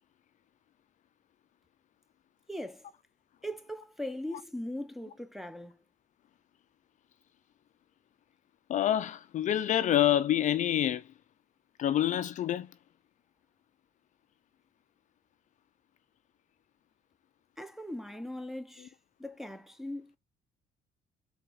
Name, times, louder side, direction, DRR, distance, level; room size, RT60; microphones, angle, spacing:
voice 1, 2.5-2.9 3.4-5.8 17.6-18.9 19.2-20.2, left 1 dB, ahead, 0.6 m, -40 dB
voice 2, 8.7-11.0 11.8-12.7, left 11 dB, 45° left, 0.4 m, -27 dB
4.6 x 3.5 x 2.4 m
cardioid pair, 110°, 17 cm